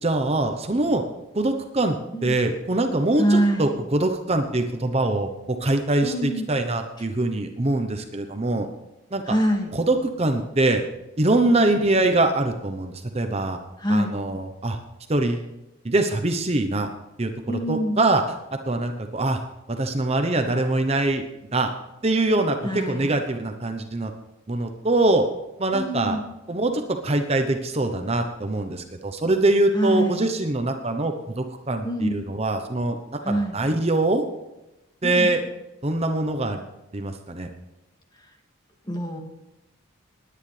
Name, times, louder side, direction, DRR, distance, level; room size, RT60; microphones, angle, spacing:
voice 1, 0.0-1.0 1.3-8.7 9.1-9.4 9.7-10.8 11.2-13.6 13.9-14.8 15.1-15.5 15.8-16.9 17.2-18.2 18.7-19.4 19.7-21.2 21.5-21.7 22.0-24.1 24.5-25.3 25.6-26.2 26.5-34.2 35.0-35.4 35.8-36.6 36.9-37.5, right 2 dB, 30° right, 5 dB, 0.9 m, -23 dB
voice 2, 3.2-3.7 6.0-6.5 9.2-9.7 13.8-14.1 17.5-18.0 22.6-23.2 25.7-26.2 29.7-30.2 31.8-32.2 33.2-33.6 35.0-35.3 38.9-39.2, equal, 20° left, 2 dB, 2.1 m, -25 dB
19.5 x 9.8 x 3.3 m, 0.98 s
head